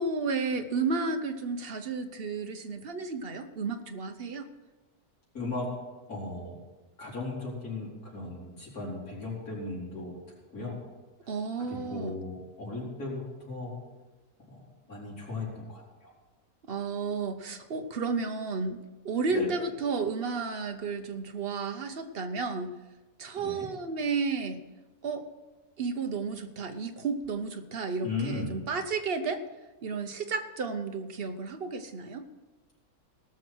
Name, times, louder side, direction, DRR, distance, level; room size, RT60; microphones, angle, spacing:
voice 1, 0.0-4.5 11.3-12.2 16.7-22.7 23.2-24.6 25.0-25.3 25.8-29.4 29.8-32.3, right 4 dB, 45° right, 7 dB, 1.0 m, -32 dB
voice 2, 5.3-5.7 6.1-6.5 7.0-10.2 10.5-10.8 11.7-13.8 14.5-16.1 19.3-19.5 23.4-23.7 28.0-28.5, left 3 dB, 75° left, -5 dB, 4.7 m, -37 dB
18.5 x 6.4 x 6.2 m, 1.2 s
omnidirectional pair, 1.6 m